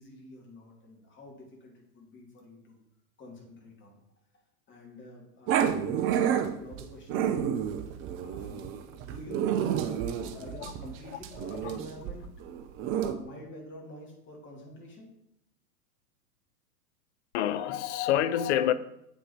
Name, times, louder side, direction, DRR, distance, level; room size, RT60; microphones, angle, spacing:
voice 1, 0.0-2.8 3.2-4.0 4.7-7.6 8.2-12.3 12.9-15.1, left 1 dB, 25° left, 2.7 m, -47 dB
Growling, 5.5-13.1, right 9 dB, 30° right, 0.6 m, -30 dB
voice 2, 11.1-11.8 17.3-18.7, left 11 dB, 50° left, 0.5 m, -28 dB
8.0 x 5.4 x 4.4 m
hypercardioid pair, 105°, 47 cm